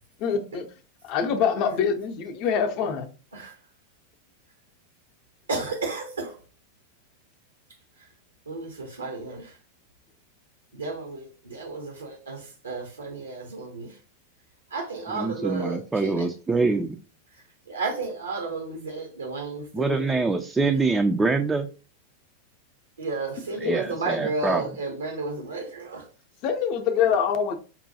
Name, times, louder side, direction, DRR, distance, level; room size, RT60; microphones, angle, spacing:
voice 1, 0.2-0.7 1.0-3.1 23.6-23.7 26.4-27.6, left 7 dB, 40° left, 0.6 m, -24 dB
voice 2, 5.5-6.3 8.5-9.5 10.7-13.9 14.7-16.3 17.7-20.0 23.0-26.0, right 3 dB, 75° right, 0.8 m, -32 dB
voice 3, 15.1-16.8 19.7-21.7 23.6-24.6, right 3 dB, 10° right, 0.3 m, -24 dB
5.4 x 2.2 x 2.7 m
figure-of-eight pair, 90°, 0 cm